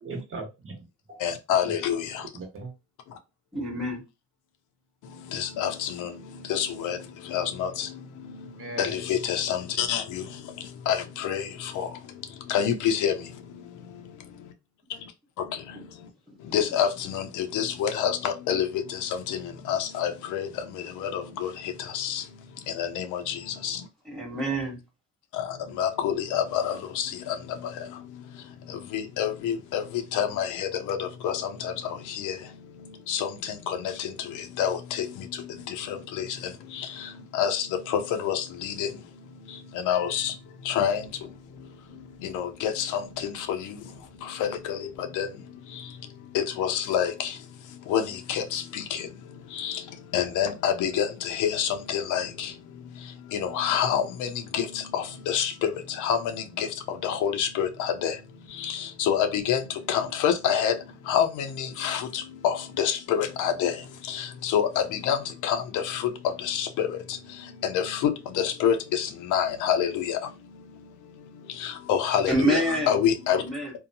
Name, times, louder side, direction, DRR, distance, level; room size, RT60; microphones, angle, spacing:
voice 1, 0.0-1.2 1.5-1.7 2.3-2.7 8.5-8.9, right 3 dB, 45° right, 1.1 m, -39 dB
voice 2, 1.2-2.3 5.0-13.6 14.9-15.1 15.4-16.1 16.4-23.8 25.3-73.4, left 8 dB, 90° left, 0.6 m, -29 dB
voice 3, 3.5-4.0 24.1-24.8 72.3-72.9 73.3-73.7, right 1 dB, ahead, 1.1 m, -26 dB
2.7 x 2.1 x 2.6 m
cardioid pair, 90°, 30 cm